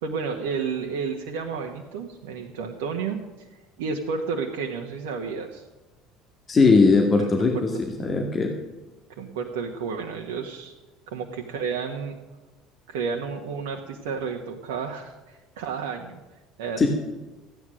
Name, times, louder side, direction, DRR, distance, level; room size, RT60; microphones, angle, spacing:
voice 1, 0.0-3.5 3.8-5.6 7.1-7.8 9.1-10.7 11.1-12.1 12.9-16.2 16.6-16.9, right 5 dB, 75° right, 1 dB, 1.3 m, -31 dB
voice 2, 6.5-7.7 8.0-8.5 16.8-16.9, left 4 dB, 35° left, 3 dB, 1.9 m, -19 dB
14.5 x 9.8 x 6.4 m, 1.1 s
hypercardioid pair, 65°, 0 cm